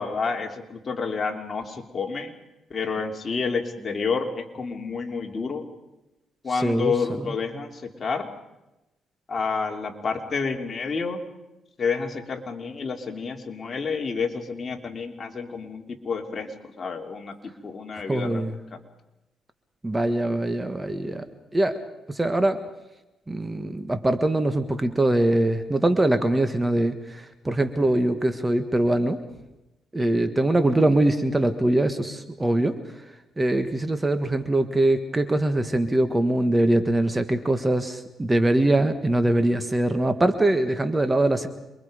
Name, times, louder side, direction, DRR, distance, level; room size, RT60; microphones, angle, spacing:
voice 1, 0.0-2.3 2.7-5.6 6.4-8.3 9.3-11.2 11.8-18.4 18.7-18.8 30.0-30.1, left 5 dB, 40° left, 2 dB, 3.1 m, -29 dB
voice 2, 6.5-7.3 18.1-18.5 19.8-21.3 21.5-21.8 22.1-22.6 23.3-29.2 29.9-32.8 33.4-41.5, right 1 dB, 15° right, 8 dB, 1.6 m, -23 dB
27.5 x 23.0 x 5.2 m, 0.98 s
cardioid pair, 90°, 0 cm